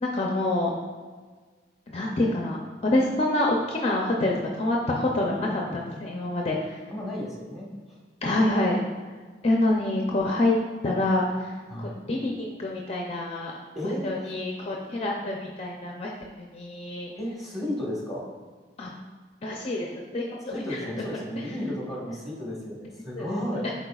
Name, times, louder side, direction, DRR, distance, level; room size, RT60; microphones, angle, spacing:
voice 1, 0.0-0.7 1.9-2.6 2.8-6.8 8.2-8.8 9.4-10.6 10.8-13.5 13.8-16.1 16.4-17.1 18.8-18.9 19.4-20.9 21.4-21.5 23.2-23.7, left 2 dB, 35° left, -1 dB, 0.5 m, -27 dB
voice 2, 5.3-5.8 6.9-8.0 11.7-11.9 13.7-14.3 17.2-18.3 20.5-23.6, left 1 dB, ahead, -4 dB, 1.5 m, -33 dB
10.5 x 4.2 x 2.3 m, 1.5 s
head